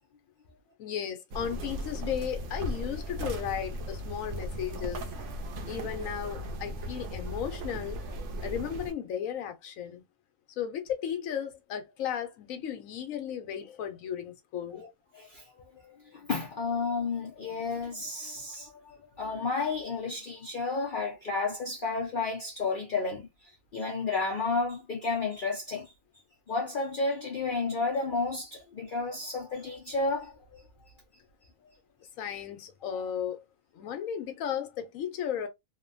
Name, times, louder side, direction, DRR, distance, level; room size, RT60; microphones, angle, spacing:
voice 1, 0.8-5.1 5.7-8.0 8.4-10.0 10.6-14.8 17.4-17.5 32.2-33.4 33.7-35.5, left 9 dB, 80° left, 1.1 m, -35 dB
sound 1, 1.3-8.9, right 1 dB, 65° right, 0.9 m, -37 dB
voice 2, 15.1-25.9 26.5-30.6, left 3 dB, 50° left, 0.6 m, -32 dB
3.0 x 2.1 x 2.5 m
omnidirectional pair, 1.4 m